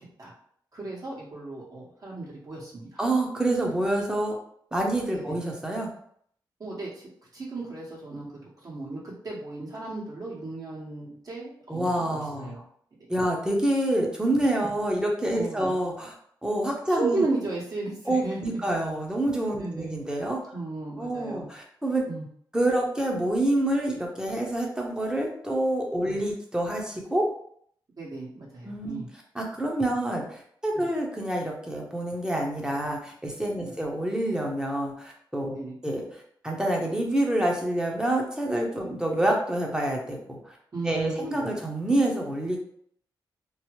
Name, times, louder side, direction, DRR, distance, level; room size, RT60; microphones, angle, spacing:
voice 1, 0.7-3.0 5.1-5.4 6.6-8.3 8.6-12.6 15.3-15.7 16.9-18.4 19.6-20.0 20.5-21.5 22.1-22.2 26.0-26.2 28.0-29.1 30.7-30.9 33.5-33.7 35.4-35.7 38.9-39.0 40.7-41.6, right 3 dB, 50° right, -5 dB, 1.5 m, -35 dB
voice 2, 3.0-4.4 4.7-5.9 11.7-12.5 13.1-16.1 16.4-17.2 18.1-20.4 21.0-22.0 22.5-27.3 28.6-29.0 29.3-35.6 35.8-36.0 36.4-40.6 40.8-42.6, right 1 dB, 10° right, 0 dB, 0.8 m, -27 dB
3.1 x 2.0 x 3.0 m, 0.65 s
cardioid pair, 60°, 8 cm